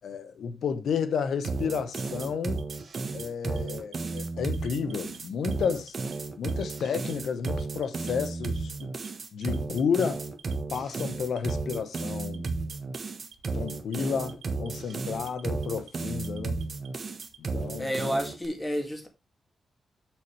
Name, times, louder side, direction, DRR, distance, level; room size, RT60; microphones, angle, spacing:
voice 1, 0.0-2.6 3.1-6.0 6.4-8.9 9.3-10.2 10.7-12.5 13.5-16.6 17.4-18.0, left 6 dB, 70° left, 1.2 m, -31 dB
sound 1, 1.4-18.5, right 3 dB, 35° right, 1.3 m, -33 dB
Alarm, 1.9-3.2 3.6-4.2 4.5-5.2 5.5-6.1 6.5-7.1 7.5-8.1 8.4-9.1 9.4-10.0 10.4-11.0 11.4-12.0 12.3-13.0 13.3-14.0 14.3-14.9 15.3-15.9 16.2-17.4, right 9 dB, 90° right, 1.3 m, -53 dB
voice 2, 17.8-19.1, equal, 10° left, 2.1 m, -30 dB
8.1 x 6.9 x 3.2 m
wide cardioid pair, 175°, 0 cm